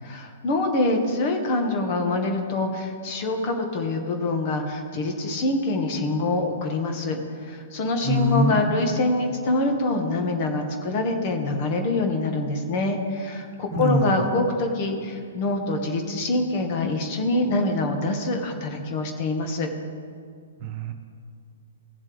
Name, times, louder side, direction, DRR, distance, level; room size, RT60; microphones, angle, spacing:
voice 1, 0.0-19.7, left 2 dB, 40° left, 4 dB, 1.6 m, -25 dB
voice 2, 8.0-8.9 13.7-14.3 20.6-20.9, right 1 dB, 40° right, 4 dB, 1.1 m, -24 dB
17.0 x 7.4 x 3.4 m, 2.1 s
figure-of-eight pair, 120°, 0 cm